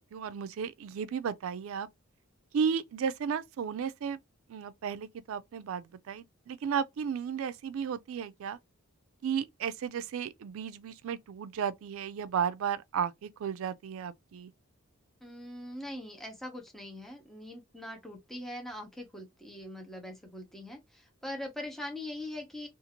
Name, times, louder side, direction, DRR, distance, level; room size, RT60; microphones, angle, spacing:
voice 1, 0.1-1.9 2.5-4.2 4.5-8.6 9.2-14.5, right 7 dB, 75° right, 0.3 m, -34 dB
voice 2, 15.2-22.7, left 1 dB, ahead, 0.7 m, -42 dB
2.5 x 2.4 x 2.9 m
head